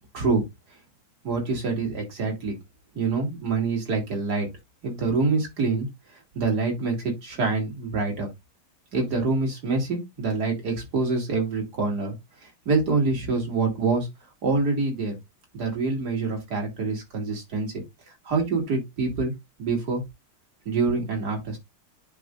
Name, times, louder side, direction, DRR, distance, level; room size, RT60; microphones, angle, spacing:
voice 1, 1.2-2.6 2.9-4.5 4.8-5.9 6.3-8.3 8.9-12.1 12.4-14.1 14.4-15.2 15.5-17.7 18.2-19.3 19.6-20.0 20.7-21.6, right 3 dB, 50° right, 2.9 m, -26 dB
10.5 x 4.4 x 2.5 m
omnidirectional pair, 2.3 m